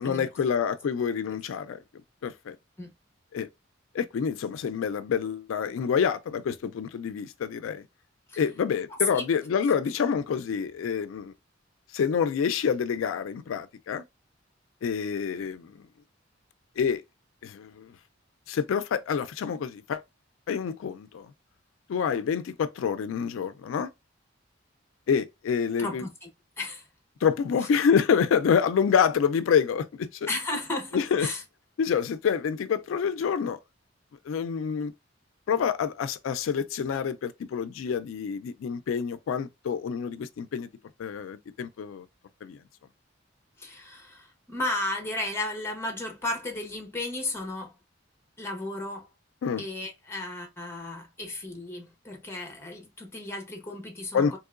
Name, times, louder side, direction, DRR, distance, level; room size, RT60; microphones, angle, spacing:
voice 1, 0.0-1.8 2.2-2.6 3.3-3.5 3.9-7.8 8.4-11.3 11.9-14.0 14.8-15.8 16.8-17.0 17.4-17.9 18.5-20.0 20.5-21.3 21.9-23.9 25.1-26.0 27.2-30.3 30.9-31.3 31.8-33.6 34.3-34.9 35.5-40.7 41.0-42.1 42.4-42.6 49.4-49.6 54.1-54.4, left 7 dB, 90° left, 0.3 m, -27 dB
voice 2, 8.9-9.2 25.8-26.3 26.6-26.9 30.3-31.4 43.6-47.8 48.4-49.1 49.6-54.4, left 2 dB, 15° left, 0.9 m, -34 dB
3.7 x 2.9 x 2.3 m
head